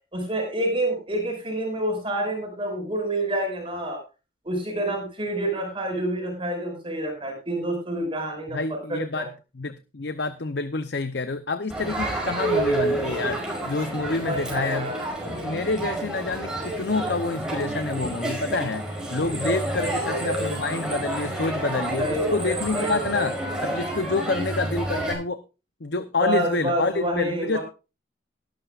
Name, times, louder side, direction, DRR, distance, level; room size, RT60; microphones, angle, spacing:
voice 1, 0.1-4.0 4.4-9.3 14.2-15.1 19.8-20.4 22.0-23.3 26.2-27.6, right 1 dB, 30° right, 2 dB, 5.6 m, -28 dB
voice 2, 8.5-9.3 9.5-14.9 15.3-23.3 23.6-25.4 25.8-27.6, left 3 dB, 60° left, 10 dB, 0.7 m, -28 dB
Crowd, 11.7-25.1, right 1 dB, 5° right, 5.3 m, -29 dB
19.0 x 11.5 x 2.5 m, 0.31 s
head